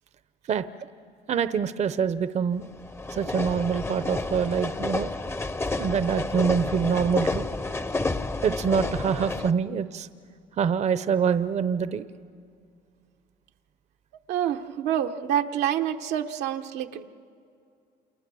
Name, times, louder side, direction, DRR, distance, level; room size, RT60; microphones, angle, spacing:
voice 1, 1.3-2.6 3.1-5.1 5.8-7.5 8.4-10.1 10.6-12.1, right 7 dB, 40° right, 13 dB, 0.7 m, -25 dB
sound 1, 2.6-9.5, left 2 dB, 15° left, 0.7 m, -30 dB
voice 2, 14.3-17.1, right 10 dB, 85° right, 5 dB, 1.0 m, -27 dB
29.0 x 28.0 x 7.0 m, 2.4 s
cardioid pair, 110°, 17 cm